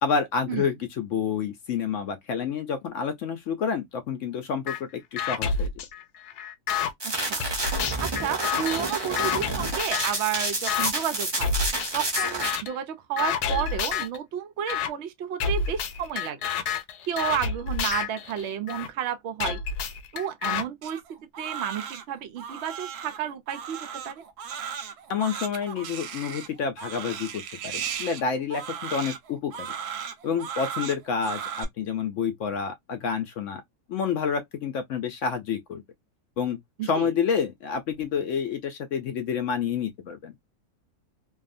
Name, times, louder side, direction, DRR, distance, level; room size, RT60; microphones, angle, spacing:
voice 1, 0.0-5.7 25.1-29.7 30.2-33.6 33.9-35.8 36.4-40.3, left 6 dB, 70° left, 0.8 m, -29 dB
sound 1, 4.7-4.8 5.2-6.9 7.4-10.2 10.7-10.9 11.4-11.9 12.2-12.8 13.2-14.2 14.7-14.9 15.4-18.9 19.4-20.6, left 6 dB, 85° left, 1.1 m, -29 dB
sound 2, 7.0-12.5, right 2 dB, 40° right, 0.3 m, -29 dB
voice 2, 7.0-7.5 8.0-11.5 11.9-16.5 17.1-19.6 20.1-21.0 21.4-24.2 36.8-37.1, right 9 dB, 70° right, 0.6 m, -31 dB
Crying sobbing, 20.8-31.6, right 8 dB, 90° right, 1.2 m, -36 dB
2.6 x 2.3 x 2.4 m
omnidirectional pair, 1.6 m